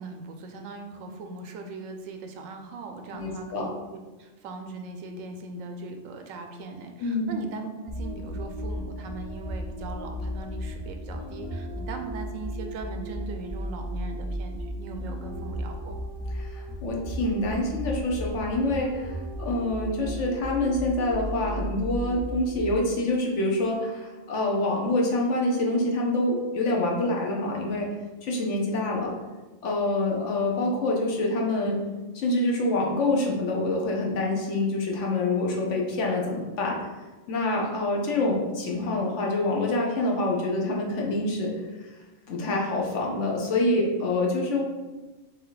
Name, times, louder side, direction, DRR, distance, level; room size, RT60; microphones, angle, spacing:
voice 1, 0.0-16.0, right 3 dB, 80° right, 5 dB, 1.0 m, -39 dB
voice 2, 3.1-3.7 7.0-7.3 16.4-19.1 19.4-27.9 28.2-29.1 29.6-31.8 32.1-36.8 37.3-41.5 42.3-44.6, left 2 dB, 65° left, -1 dB, 1.1 m, -26 dB
sound 1, 7.9-23.0, equal, 40° left, 0.4 m, -35 dB
4.7 x 2.9 x 3.9 m, 1.2 s
omnidirectional pair, 1.4 m